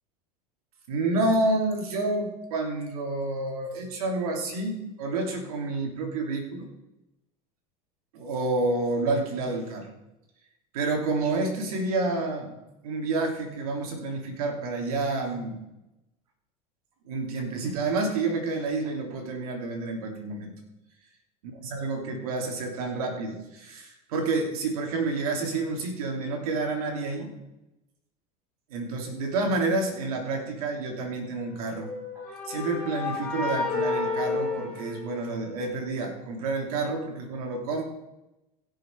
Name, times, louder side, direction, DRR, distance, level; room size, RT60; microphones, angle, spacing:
voice 1, 0.9-6.7 8.1-9.9 10.7-12.5 12.8-15.6 17.0-20.5 21.6-27.3 28.7-31.9 32.2-37.8, right 3 dB, 80° right, 2 dB, 2.9 m, -29 dB
sound 1, 31.8-35.7, left 4 dB, 5° left, 2.6 m, -31 dB
16.5 x 6.7 x 4.5 m, 0.93 s
supercardioid pair, 105°, 19 cm